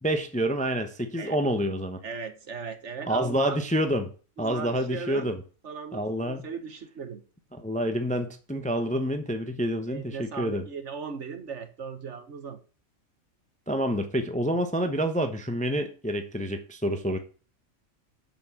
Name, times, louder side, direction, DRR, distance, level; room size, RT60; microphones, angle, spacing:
voice 1, 0.0-2.0 3.1-4.1 4.4-5.4 5.9-6.4 7.5-10.6 13.7-17.2, equal, 5° left, 0.7 m, -28 dB
voice 2, 2.0-3.6 4.4-5.3 5.6-7.2 9.9-12.6, right 5 dB, 55° right, 1.4 m, -37 dB
7.1 x 6.2 x 7.2 m
omnidirectional pair, 1.5 m